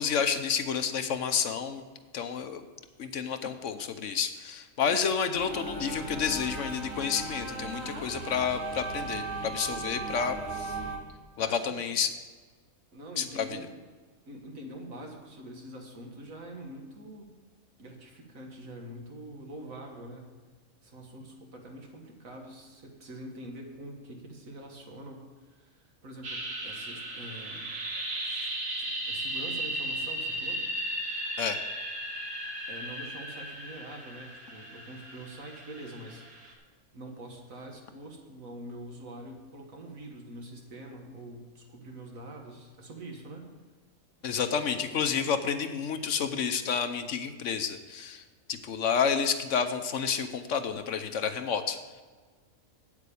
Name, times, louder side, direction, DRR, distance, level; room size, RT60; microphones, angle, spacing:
voice 1, 0.0-1.8 2.1-2.6 3.0-10.8 11.4-12.1 13.2-13.5 31.4-31.6 44.2-48.2 48.5-51.8, left 6 dB, 65° left, 9 dB, 1.0 m, -30 dB
sound 1, 5.3-11.0, right 3 dB, 50° right, 1.6 m, -37 dB
voice 2, 11.4-11.8 12.9-13.7 14.3-17.3 17.8-20.3 20.8-27.8 28.2-28.5 28.8-30.6 32.7-36.4 36.9-43.5, right 1 dB, 65° right, 1 dB, 2.0 m, -45 dB
sound 2, 26.2-36.5, right 1 dB, 85° right, 2.3 m, -36 dB
8.7 x 8.3 x 6.9 m, 1.4 s
omnidirectional pair, 1.5 m